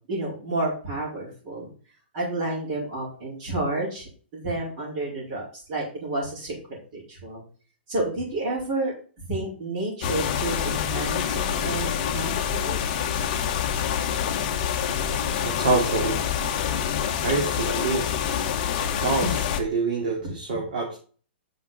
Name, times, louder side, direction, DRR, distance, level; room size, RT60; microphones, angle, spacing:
voice 1, 0.1-1.7 2.1-7.4 7.9-8.9 9.3-12.8 20.2-20.7, right 2 dB, 25° right, -8 dB, 4.9 m, -30 dB
sound 1, 10.0-19.6, left 8 dB, 30° left, 1.3 m, -26 dB
voice 2, 15.4-16.2 17.2-18.1 19.0-19.3 19.6-21.0, right 3 dB, 50° right, -2 dB, 2.9 m, -25 dB
9.6 x 6.3 x 4.3 m, 0.40 s
hypercardioid pair, 180°, 6 cm